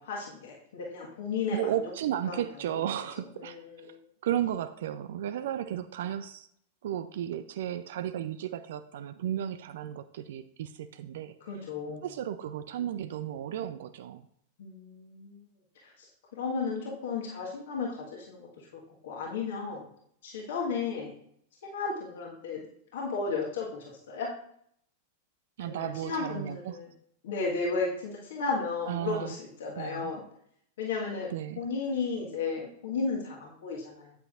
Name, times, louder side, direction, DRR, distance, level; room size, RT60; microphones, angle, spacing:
voice 1, 0.0-1.7 2.3-2.5 3.4-4.0 11.4-12.1 14.6-15.4 15.8-19.9 20.2-21.1 21.6-22.6 22.9-24.3 25.6-26.9 27.2-30.2 30.8-34.2, left 4 dB, 55° left, -1 dB, 1.5 m, -34 dB
voice 2, 1.5-3.9 4.2-6.5 6.8-11.3 12.0-14.2 25.6-26.8 28.9-29.4 29.8-30.1 31.3-31.6, right 10 dB, 55° right, 11 dB, 0.4 m, -34 dB
8.8 x 8.2 x 2.5 m, 0.68 s
figure-of-eight pair, 95°, 0 cm